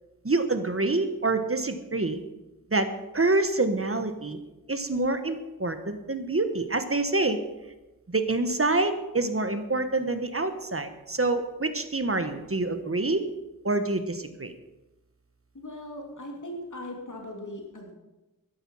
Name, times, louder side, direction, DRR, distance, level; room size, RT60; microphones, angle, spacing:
voice 1, 0.2-2.2 2.7-4.4 4.7-7.4 8.1-13.3 13.6-14.5, right 2 dB, 40° right, 8 dB, 1.3 m, -27 dB
voice 2, 15.5-17.9, left 1 dB, 55° left, 0 dB, 3.0 m, -39 dB
13.0 x 11.0 x 5.6 m, 1.0 s
wide cardioid pair, 65°, 36 cm